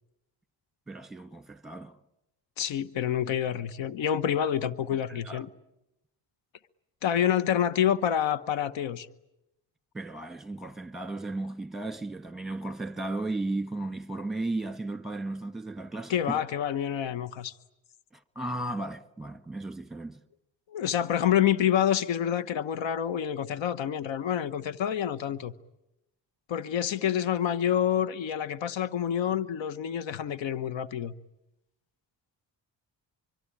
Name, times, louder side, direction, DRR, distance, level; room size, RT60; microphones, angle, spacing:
voice 1, 0.9-2.0 5.1-5.4 9.9-16.4 18.3-20.2, right 2 dB, ahead, 1.5 m, -35 dB
voice 2, 2.6-5.5 7.0-9.1 16.1-17.5 20.7-25.5 26.5-31.1, left 9 dB, 85° left, 1.1 m, -27 dB
24.5 x 24.0 x 10.0 m
cardioid pair, 80°, 44 cm